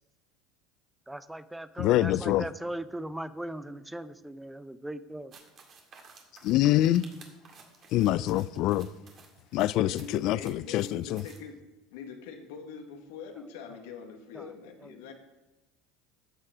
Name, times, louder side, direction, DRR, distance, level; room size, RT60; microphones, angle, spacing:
voice 1, 1.1-5.3 13.7-13.8 14.3-14.5 14.8-15.0, right 1 dB, 5° right, 0.6 m, -39 dB
voice 2, 1.8-2.4 6.4-7.1 7.9-8.9 9.5-11.2, left 14 dB, 60° left, 0.4 m, -25 dB
sound 1, 5.3-11.4, right 5 dB, 45° right, 2.0 m, -55 dB
voice 3, 9.8-11.6 11.9-15.1, left 6 dB, 75° left, 1.6 m, -43 dB
13.0 x 6.6 x 4.9 m
hypercardioid pair, 85°, 0 cm